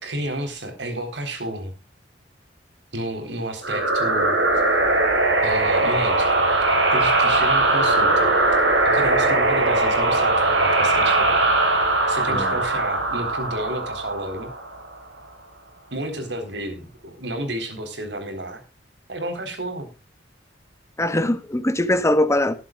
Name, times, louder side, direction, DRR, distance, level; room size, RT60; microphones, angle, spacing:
voice 1, 0.0-1.7 2.9-4.4 5.4-6.4 6.9-8.3 8.8-11.4 12.1-14.5 15.9-18.6 19.1-19.9, right 1 dB, 70° right, 3.9 m, -31 dB
sound 1, 3.6-15.0, right 2 dB, 90° right, 5.1 m, -20 dB
voice 2, 21.0-22.5, left 1 dB, 15° left, 1.1 m, -21 dB
20.0 x 11.0 x 2.4 m
head